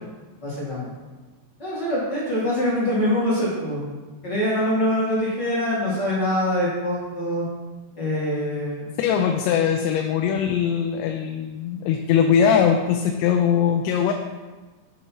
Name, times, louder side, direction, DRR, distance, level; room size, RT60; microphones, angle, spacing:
voice 1, 0.4-0.9 1.6-3.9 4.2-7.5 8.0-8.9, left 1 dB, 35° left, -7 dB, 1.8 m, -24 dB
voice 2, 9.0-14.1, left 8 dB, 90° left, 3 dB, 2.9 m, -21 dB
8.1 x 7.2 x 4.6 m, 1.3 s
omnidirectional pair, 5.0 m